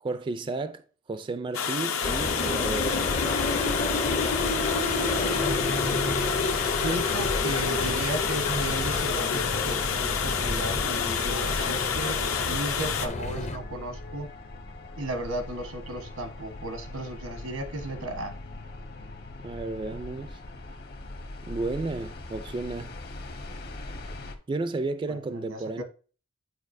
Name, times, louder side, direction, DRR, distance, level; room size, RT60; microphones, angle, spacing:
voice 1, 0.0-0.8 1.1-3.2 19.4-20.4 21.4-22.9 24.5-25.8, right 3 dB, 25° right, 0.3 m, -32 dB
Water, 1.5-13.1, left 7 dB, 80° left, 0.8 m, -29 dB
sound 1, 2.0-13.6, left 3 dB, 35° left, 0.5 m, -30 dB
voice 2, 5.4-6.3 6.8-12.2 12.4-14.3 15.0-18.3 25.1-25.8, right 1 dB, 90° right, 1.2 m, -34 dB
sound 2, 7.8-24.3, left 2 dB, 50° left, 0.9 m, -41 dB
8.2 x 4.6 x 2.6 m
head